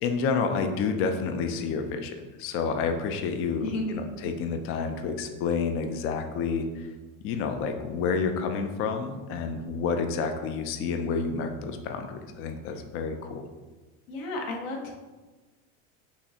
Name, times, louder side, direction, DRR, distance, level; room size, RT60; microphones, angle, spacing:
voice 1, 0.0-6.9 7.2-13.5, left 5 dB, 35° left, 6 dB, 0.4 m, -29 dB
voice 2, 3.6-4.1 14.1-14.9, left 1 dB, 65° left, 0 dB, 1.1 m, -32 dB
5.5 x 3.1 x 2.8 m, 1.2 s
supercardioid pair, 140°, 40 cm